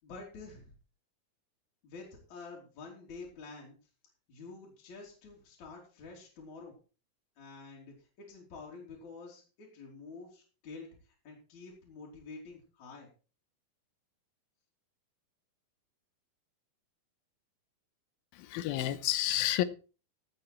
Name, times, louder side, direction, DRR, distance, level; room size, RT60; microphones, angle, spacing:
voice 1, 0.0-0.7 1.8-3.8 4.3-6.7 7.4-10.9 11.2-13.1, left 4 dB, 50° left, -2 dB, 4.4 m, -48 dB
voice 2, 18.4-19.6, left 13 dB, 80° left, 13 dB, 2.6 m, -30 dB
15.5 x 8.4 x 4.5 m, 0.35 s
omnidirectional pair, 4.4 m